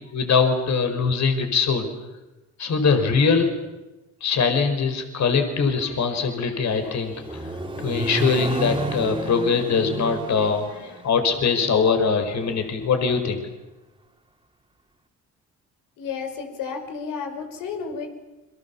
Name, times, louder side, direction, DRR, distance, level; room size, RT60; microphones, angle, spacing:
voice 1, 0.1-1.9 2.6-3.5 4.2-7.4 7.8-13.4, left 5 dB, 60° left, 7 dB, 5.3 m, -22 dB
Accelerating revving vroom, 6.7-12.7, right 2 dB, 15° right, 3.4 m, -31 dB
voice 2, 16.0-18.1, left 5 dB, 80° left, 5 dB, 5.5 m, -32 dB
29.5 x 24.0 x 7.3 m, 1.0 s
supercardioid pair, 70°, 32 cm